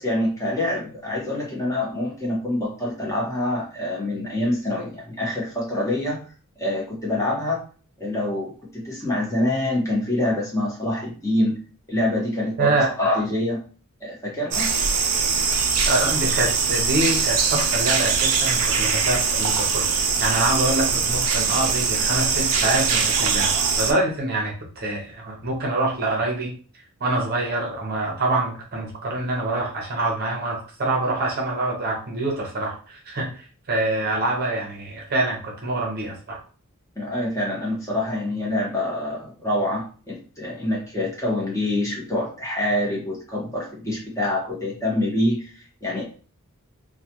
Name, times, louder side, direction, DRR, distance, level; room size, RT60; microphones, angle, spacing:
voice 1, 0.0-6.2 6.6-7.6 8.0-11.6 11.9-12.7 13.0-13.6 14.0-14.7 37.0-46.0, left 1 dB, 15° left, -4 dB, 0.9 m, -26 dB
voice 2, 12.6-12.9 15.9-26.6 27.0-36.4, right 2 dB, 45° right, -1 dB, 0.7 m, -25 dB
sound 1, 14.5-23.9, right 5 dB, 85° right, 0.4 m, -22 dB
2.3 x 2.2 x 2.8 m, 0.39 s
head